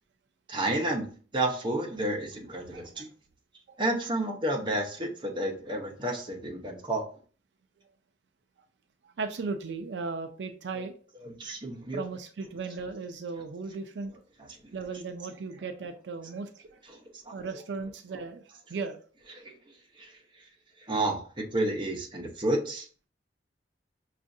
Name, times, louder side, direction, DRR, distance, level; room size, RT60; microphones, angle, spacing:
voice 1, 0.5-1.0 1.3-3.1 3.8-7.0 11.2-12.0 14.4-14.7 16.9-17.3 18.1-18.2 19.4-19.5 20.0-20.4 20.8-23.1, right 1 dB, 30° right, 0 dB, 0.8 m, -31 dB
voice 2, 2.7-3.0 3.7-3.8 9.0-10.9 11.9-14.1 14.7-16.8 17.3-18.4 18.7-19.0, right 4 dB, 80° right, 6 dB, 0.4 m, -36 dB
5.9 x 2.5 x 2.6 m, 0.41 s
head